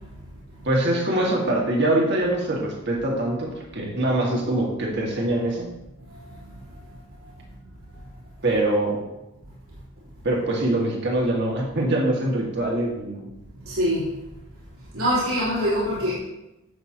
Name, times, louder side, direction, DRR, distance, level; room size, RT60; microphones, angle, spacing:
voice 1, 0.6-5.7 8.4-9.0 10.2-13.3, right 1 dB, 55° right, -2 dB, 2.1 m, -23 dB
voice 2, 13.7-14.1 14.9-16.2, equal, 80° right, -10 dB, 3.4 m, -23 dB
11.5 x 7.8 x 2.9 m, 0.97 s
head